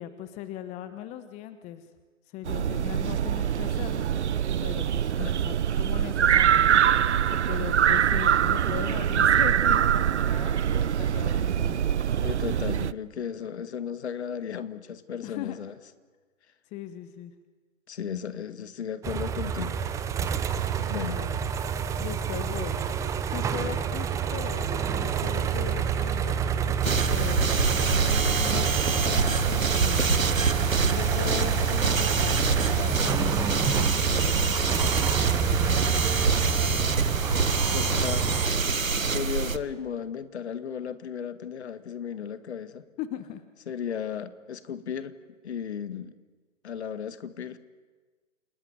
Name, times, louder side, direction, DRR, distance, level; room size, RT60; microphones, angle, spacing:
voice 1, 0.0-1.8 2.3-4.1 4.6-6.8 7.5-11.8 15.2-15.6 16.7-17.3 21.0-21.4 22.0-22.8 23.3-30.2 30.9-34.5 34.8-35.0 43.0-43.4, left 12 dB, 15° left, 11 dB, 1.0 m, -39 dB
sound 1, 2.5-12.9, right 9 dB, 60° right, 0.8 m, -24 dB
voice 2, 12.2-15.8 17.9-19.8 20.8-21.2 36.0-36.1 37.7-38.3 39.1-42.8 43.7-45.1 45.4-46.1 46.6-47.6, left 8 dB, 55° left, 12 dB, 1.9 m, -35 dB
sound 2, 19.0-38.5, right 7 dB, 10° right, 0.8 m, -28 dB
sound 3, 26.8-39.6, right 4 dB, 85° right, 1.5 m, -26 dB
29.0 x 20.0 x 9.5 m, 1.4 s
figure-of-eight pair, 130°, 39 cm